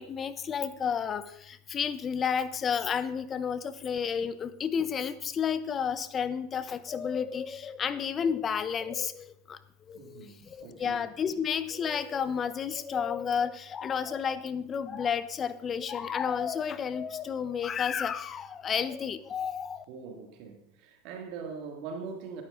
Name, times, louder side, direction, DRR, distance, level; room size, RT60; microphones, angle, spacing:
voice 1, 0.0-9.6 9.9-10.2 10.6-19.8, left 7 dB, 35° left, 0.8 m, -31 dB
voice 2, 9.9-11.0 19.9-22.4, right 5 dB, 60° right, 2.3 m, -42 dB
12.5 x 12.0 x 3.9 m
hypercardioid pair, 100°, 0 cm